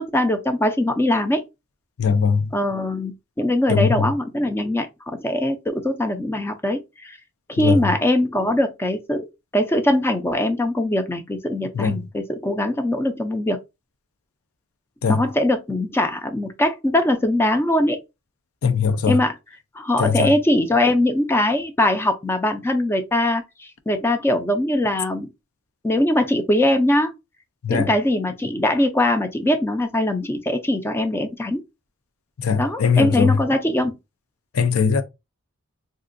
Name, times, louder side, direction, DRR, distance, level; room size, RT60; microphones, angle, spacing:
voice 1, 0.0-1.4 2.5-7.2 7.5-9.3 9.5-13.6 15.1-18.0 19.1-19.3 19.7-25.3 25.8-27.1 27.7-31.6 32.6-34.0, left 1 dB, 10° left, 0.3 m, -21 dB
voice 2, 2.0-2.5 3.7-4.1 7.6-7.9 11.7-12.0 15.0-15.2 18.6-19.2 20.0-20.3 27.6-27.9 32.4-33.4 34.5-35.0, left 6 dB, 85° left, 0.5 m, -20 dB
3.7 x 2.4 x 2.5 m
head